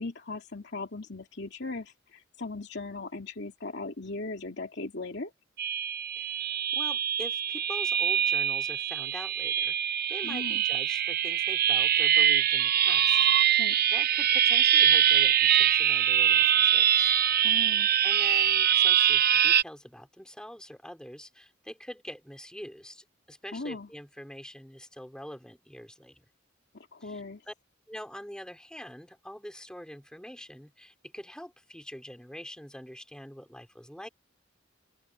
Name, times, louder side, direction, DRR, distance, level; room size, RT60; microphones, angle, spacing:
voice 1, 0.0-5.3 10.2-10.6 13.6-13.8 17.4-17.9 23.5-23.9 26.7-27.4, left 3 dB, 60° left, 2.6 m, -38 dB
sound 1, 5.6-19.6, right 9 dB, 50° right, 0.8 m, -23 dB
voice 2, 6.2-9.8 10.1-17.5 18.0-26.2 27.0-27.5 27.9-34.1, equal, 5° left, 4.7 m, -44 dB
open air
head